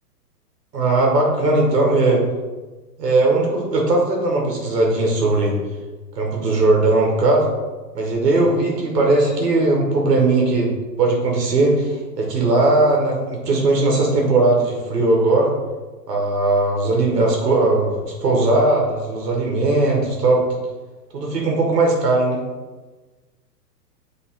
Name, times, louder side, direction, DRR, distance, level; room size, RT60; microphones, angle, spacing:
voice 1, 0.7-2.2 3.0-5.6 6.2-7.5 7.9-15.5 16.1-20.4 21.1-22.4, right 2 dB, 70° right, -1 dB, 1.8 m, -18 dB
7.5 x 3.8 x 3.8 m, 1.3 s
hypercardioid pair, 125°, 49 cm